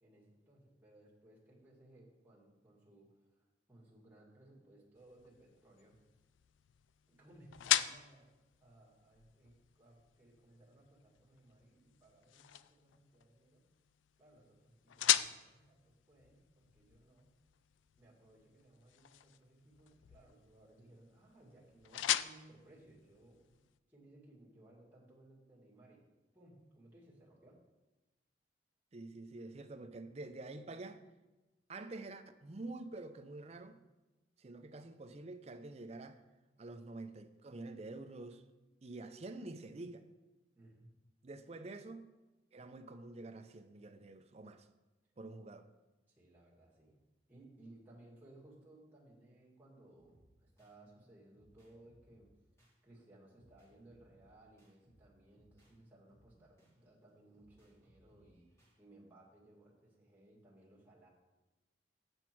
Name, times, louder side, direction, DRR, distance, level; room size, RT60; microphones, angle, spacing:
voice 1, 0.0-6.0 7.1-13.7 14.2-17.3 18.0-23.6 23.9-26.1 26.3-27.6 40.6-40.9 46.1-47.0 47.3-52.3 52.8-61.1, right 1 dB, 10° right, 2.1 m, -62 dB
sound 1, 5.0-23.8, left 12 dB, 85° left, 0.3 m, -41 dB
voice 2, 28.9-31.0 31.7-33.8 34.4-36.2 36.6-38.4 38.8-40.1 41.2-42.1 42.5-44.7 45.2-45.7, right 2 dB, 35° right, 0.5 m, -47 dB
sound 2, 50.0-50.8 51.3-52.8 53.3-55.8 56.1-58.8, right 1 dB, 15° left, 2.2 m, -68 dB
8.0 x 7.0 x 4.5 m
head